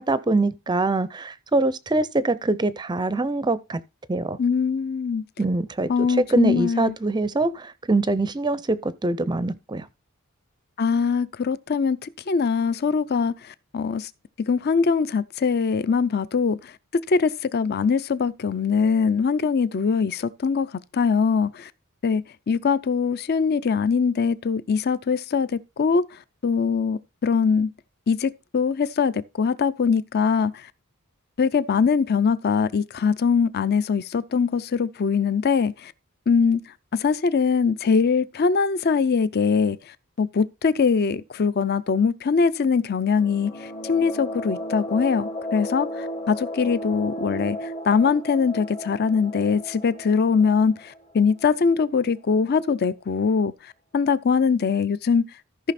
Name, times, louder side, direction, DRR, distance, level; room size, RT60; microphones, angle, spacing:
voice 1, 0.0-3.8 4.1-4.4 5.4-9.9, right 2 dB, 20° right, 0.5 m, -24 dB
voice 2, 4.4-5.2 5.9-6.9 10.8-14.1 14.5-16.7 17.1-20.7 20.9-21.7 22.0-26.0 26.4-27.7 28.1-30.7 31.4-35.9 36.3-36.6 36.9-53.5 53.9-55.2, left 5 dB, 45° left, 0.5 m, -22 dB
sound 1, 43.1-51.7, equal, 25° left, 1.0 m, -34 dB
14.0 x 5.8 x 4.2 m
head